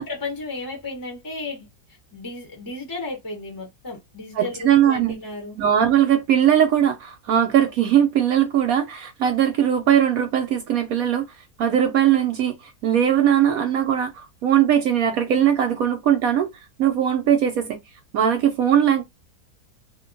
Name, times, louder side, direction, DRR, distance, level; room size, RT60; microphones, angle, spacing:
voice 1, 0.0-1.7 2.1-5.6, left 3 dB, 20° left, 0.5 m, -34 dB
voice 2, 4.4-5.2 5.6-11.2 11.6-16.5 16.8-17.8 18.1-19.0, right 9 dB, 70° right, 1.0 m, -20 dB
2.7 x 2.2 x 3.7 m
omnidirectional pair, 1.7 m